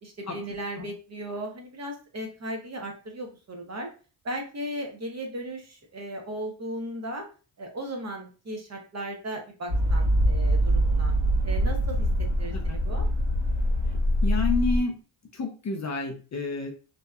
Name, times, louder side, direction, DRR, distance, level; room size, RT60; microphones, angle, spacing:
voice 1, 0.0-3.9 4.2-7.3 7.6-11.1 11.4-12.1 12.4-13.1, right 1 dB, 35° right, 2 dB, 0.7 m, -36 dB
sound 1, 9.7-14.8, equal, 85° right, 1.3 m, -24 dB
voice 2, 14.2-14.9 15.3-16.7, left 3 dB, 35° left, 3 dB, 0.5 m, -29 dB
2.7 x 2.2 x 2.3 m, 0.36 s
cardioid pair, 75°, 49 cm